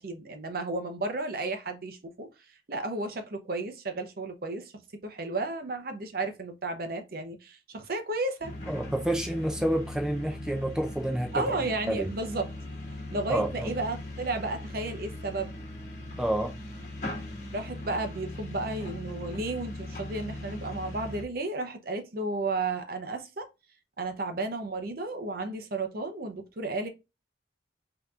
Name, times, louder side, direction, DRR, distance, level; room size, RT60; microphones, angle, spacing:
voice 1, 0.0-2.3 2.7-4.7 5.0-8.5 11.3-12.5 13.1-15.5 17.5-23.5 24.0-26.9, right 2 dB, 50° right, 0.7 m, -33 dB
sound 1, 8.4-21.2, left 1 dB, 40° left, 1.3 m, -39 dB
voice 2, 8.7-12.1 13.3-13.7 16.2-16.5, right 1 dB, 5° right, 0.5 m, -29 dB
5.6 x 2.9 x 2.4 m
head